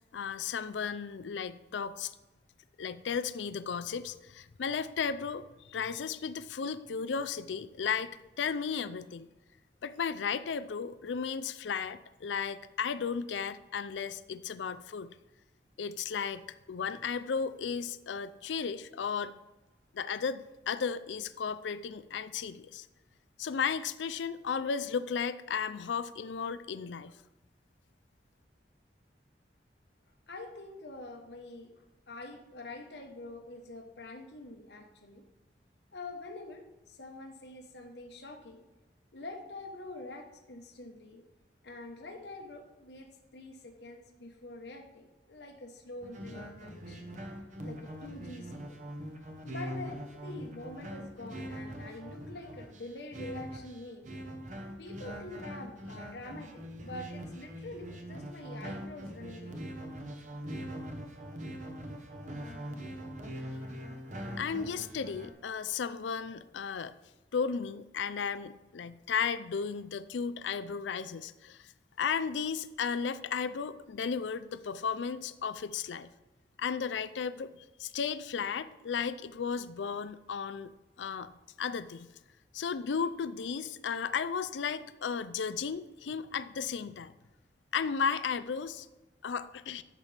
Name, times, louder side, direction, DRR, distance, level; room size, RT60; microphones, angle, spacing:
voice 1, 0.1-2.1 2.8-8.1 8.4-9.3 9.8-15.1 15.8-19.3 19.9-22.9 23.4-27.2 64.4-66.9 67.3-71.7 72.0-76.1 76.6-77.5 77.8-80.7 81.0-81.3 81.6-82.1 82.5-87.1 87.7-88.9 89.2-89.8, left 6 dB, 85° left, 13 dB, 0.4 m, -34 dB
voice 2, 30.3-31.7 32.1-35.2 35.9-38.6 39.1-41.2 41.6-47.1 47.6-48.8 49.4-54.1 54.8-59.6, left 2 dB, 70° left, 4 dB, 1.1 m, -46 dB
sound 1, 46.0-65.3, equal, 45° right, 1.0 m, -42 dB
11.5 x 7.4 x 3.4 m, 1.1 s
head